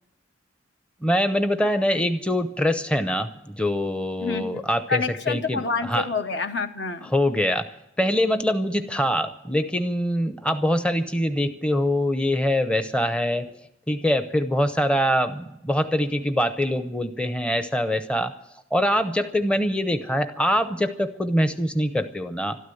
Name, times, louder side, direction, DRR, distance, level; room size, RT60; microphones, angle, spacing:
voice 1, 1.0-5.0 5.3-6.1 7.1-7.7 8.0-13.5 13.9-18.3 18.7-22.6, equal, 5° left, 9 dB, 0.7 m, -24 dB
voice 2, 4.2-4.6 4.9-7.1, left 5 dB, 65° left, 8 dB, 1.1 m, -28 dB
13.0 x 12.5 x 7.8 m, 0.82 s
head